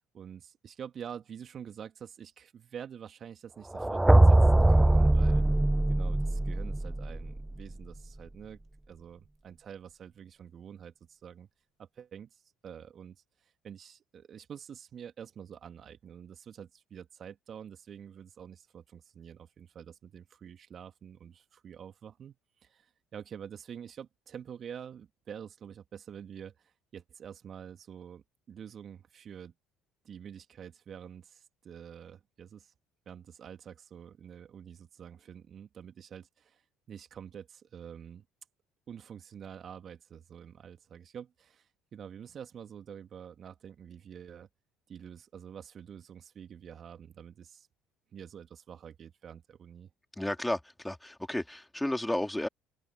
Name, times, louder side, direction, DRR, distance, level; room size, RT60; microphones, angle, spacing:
voice 1, 0.0-5.4 5.9-8.6 8.9-11.5 11.8-29.5 30.0-32.7 33.1-36.6 36.9-38.2 38.9-44.5 44.9-47.7 48.1-49.9, right 8 dB, 45° right, 2.4 m, -47 dB
sound 1, 3.7-7.7, right 1 dB, 10° right, 0.4 m, -22 dB
voice 2, 50.2-52.5, left 1 dB, 5° left, 3.4 m, -32 dB
hypercardioid pair, 65°, 0 cm